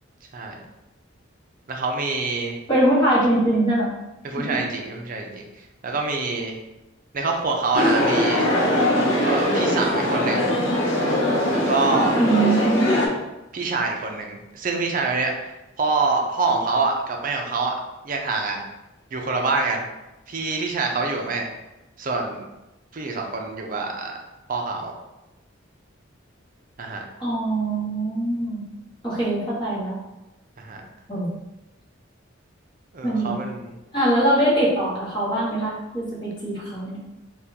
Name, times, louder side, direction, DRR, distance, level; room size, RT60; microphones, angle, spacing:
voice 1, 1.7-2.6 4.2-5.4 5.8-6.6 7.1-8.5 9.2-10.5 11.5-12.2 13.5-17.7 18.0-18.6 19.1-19.8 20.3-21.5 22.0-22.4 22.9-24.2 24.5-25.0 26.8-27.1 30.6-30.8 32.9-33.7, right 3 dB, 45° right, 2 dB, 0.5 m, -26 dB
voice 2, 2.7-3.9 4.4-4.6 12.2-12.9 27.2-28.6 29.0-29.9 31.1-31.3 33.0-33.3 33.9-37.0, right 1 dB, 25° left, -8 dB, 1.2 m, -22 dB
sound 1, 7.7-13.1, left 1 dB, 75° left, 0.7 m, -21 dB
3.6 x 2.3 x 2.8 m, 0.99 s
head